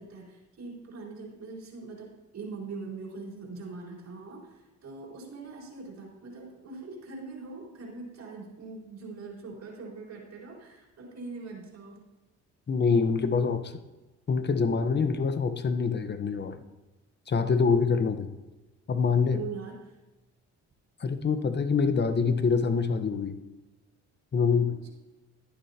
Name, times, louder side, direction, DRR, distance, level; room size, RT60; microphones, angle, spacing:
voice 1, 0.0-12.0 19.3-19.9 24.8-24.9, right 4 dB, 60° right, -3 dB, 4.2 m, -42 dB
voice 2, 12.7-13.7 14.3-16.6 17.3-18.3 18.9-19.4 21.0-23.4 24.3-24.8, left 5 dB, 35° left, 9 dB, 1.0 m, -25 dB
15.5 x 10.5 x 2.9 m, 1.1 s
cardioid pair, 90°, 30 cm